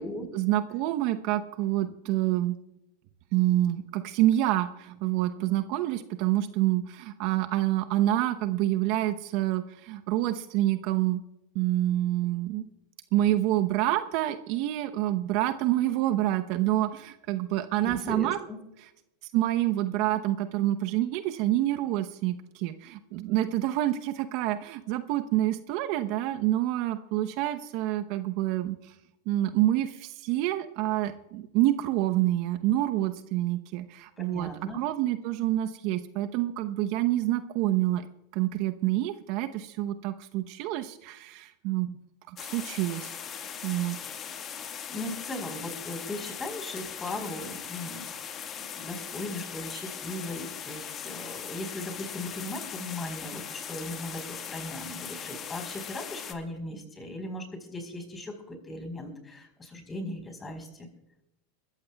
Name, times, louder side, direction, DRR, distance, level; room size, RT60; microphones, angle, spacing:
voice 1, 0.3-2.6 3.3-11.2 11.5-12.6 13.1-18.4 19.3-28.8 29.3-38.1 38.3-42.0 42.3-43.2 43.6-44.0, right 14 dB, 55° right, 9 dB, 0.8 m, -27 dB
voice 2, 17.8-18.6 34.2-34.9 44.9-48.1 48.6-60.9, left 1 dB, 15° left, 5 dB, 4.2 m, -38 dB
sound 1, 42.4-56.3, left 8 dB, 35° left, 1.7 m, -39 dB
22.5 x 14.0 x 2.3 m, 0.87 s
hypercardioid pair, 95°, 0 cm